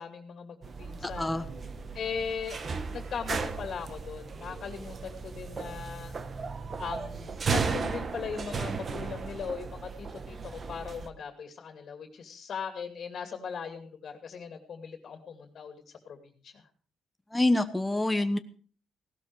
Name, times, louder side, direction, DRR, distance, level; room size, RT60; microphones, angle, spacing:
voice 1, 0.0-1.4 1.9-2.6 2.9-6.1 6.8-16.2 16.4-16.6, left 6 dB, 55° left, 7 dB, 2.5 m, -39 dB
sound 1, 0.6-11.1, right 5 dB, 40° right, 1.4 m, -35 dB
voice 2, 17.3-18.4, left 2 dB, 10° left, 8 dB, 1.0 m, -26 dB
17.0 x 12.5 x 4.7 m, 0.41 s
cardioid pair, 90°, 0 cm